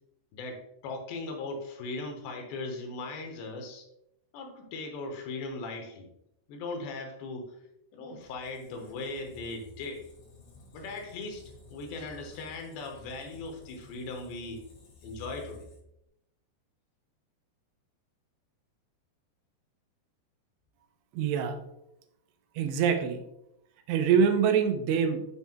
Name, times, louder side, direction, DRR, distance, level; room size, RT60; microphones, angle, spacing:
voice 1, 0.3-3.9 4.3-6.1 6.5-7.6 7.9-10.1 10.7-14.7 15.0-15.7, left 3 dB, 85° left, 4 dB, 3.3 m, -39 dB
Squeak, 8.2-16.1, left 3 dB, 70° left, 4.1 m, -53 dB
voice 2, 21.1-21.6 22.6-23.2 23.9-25.3, right 7 dB, 85° right, 7 dB, 3.0 m, -25 dB
11.5 x 6.0 x 2.2 m, 0.83 s
omnidirectional pair, 4.9 m